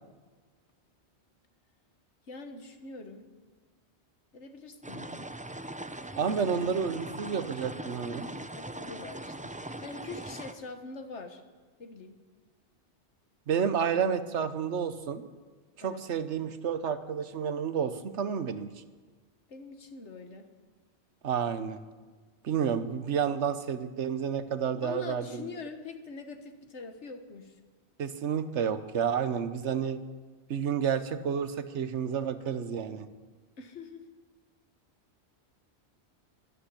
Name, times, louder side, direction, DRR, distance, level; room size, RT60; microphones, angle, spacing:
voice 1, 2.3-3.3 4.3-5.3 8.5-11.4 11.8-12.2 15.8-16.0 19.5-20.5 24.8-27.6 33.6-34.1, left 4 dB, 85° left, 7 dB, 1.7 m, -44 dB
sound 1, 4.8-10.5, right 1 dB, 10° right, 0.4 m, -41 dB
voice 2, 6.2-8.3 13.5-15.2 15.8-18.7 21.2-21.8 22.4-25.4 28.0-30.0 30.5-33.1, right 7 dB, 90° right, 11 dB, 1.3 m, -30 dB
12.5 x 11.5 x 9.8 m, 1.4 s
omnidirectional pair, 1.1 m